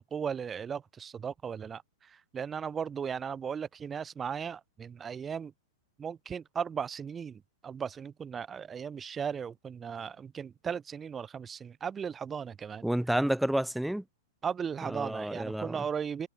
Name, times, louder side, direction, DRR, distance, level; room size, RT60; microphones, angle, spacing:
voice 1, 0.0-5.5 6.0-12.9 14.4-16.3, right 7 dB, 20° right, 4.1 m, -36 dB
voice 2, 12.8-14.0 14.9-15.8, right 1 dB, ahead, 1.2 m, -30 dB
figure-of-eight pair, 110°, 0 cm